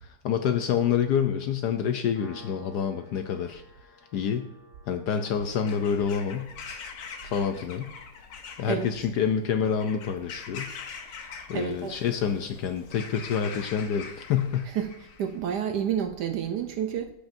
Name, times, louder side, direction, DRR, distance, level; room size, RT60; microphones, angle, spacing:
voice 1, 0.0-3.6 4.1-4.5 4.9-6.5 7.2-7.9 8.6-10.7 11.5-14.7, left 7 dB, 70° left, 6 dB, 1.0 m, -27 dB
Piano, 2.2-9.3, left 2 dB, 10° right, 3.4 m, -55 dB
Bird vocalization bird call bird song / Crow, 5.5-15.4, left 5 dB, 90° left, 1.7 m, -43 dB
voice 2, 11.5-12.0 14.7-14.9 15.2-17.1, right 8 dB, 70° right, 7 dB, 1.1 m, -29 dB
14.0 x 5.0 x 2.6 m, 0.82 s
omnidirectional pair, 2.1 m